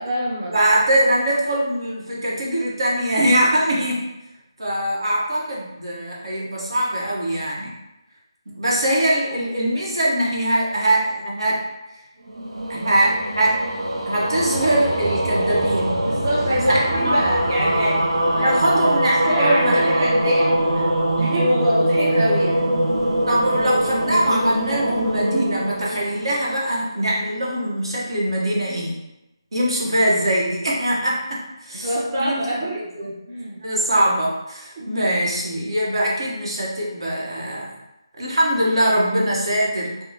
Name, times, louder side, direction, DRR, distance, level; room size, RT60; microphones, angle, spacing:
voice 1, 0.0-0.6 8.7-8.8 16.0-18.0 18.4-18.6 19.0-20.8 21.2-22.6 31.8-32.9 33.3-33.6 34.8-35.1, equal, 30° right, -8 dB, 0.6 m, -25 dB
voice 2, 0.5-4.1 4.6-7.7 8.5-11.6 12.7-13.6 14.1-16.0 16.7-17.2 18.4-20.3 23.3-29.0 29.5-32.6 33.0-33.1 33.6-37.7 38.2-40.0, right 1 dB, 65° right, -4 dB, 0.9 m, -22 dB
sound 1, 12.3-26.7, right 1 dB, 80° right, 0.5 m, -22 dB
3.5 x 2.0 x 2.7 m, 0.92 s
figure-of-eight pair, 175°, 3 cm